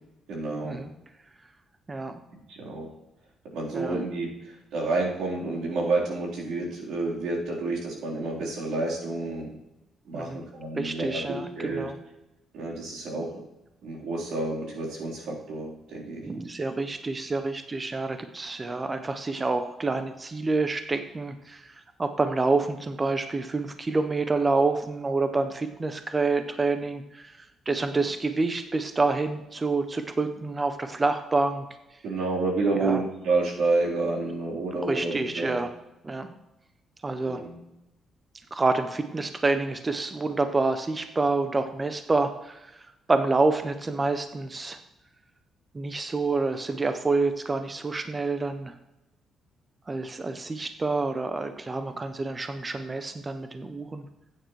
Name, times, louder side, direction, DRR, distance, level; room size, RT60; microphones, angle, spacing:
voice 1, 0.3-0.8 2.5-2.9 3.5-4.3 4.7-9.5 10.1-11.9 12.5-13.3 13.8-16.2 32.0-35.6 37.2-37.6, right 3 dB, 85° right, -4 dB, 3.6 m, -29 dB
voice 2, 1.9-2.2 3.7-4.0 10.1-10.4 10.8-11.9 16.2-21.7 22.0-27.4 27.7-31.7 32.8-33.0 34.8-35.7 36.0-36.3 37.0-37.4 38.5-42.8 43.1-44.8 45.7-48.7 49.9-54.0, right 3 dB, 15° right, 8 dB, 0.5 m, -27 dB
14.5 x 9.2 x 3.1 m, 0.95 s
cardioid pair, 175°, 0 cm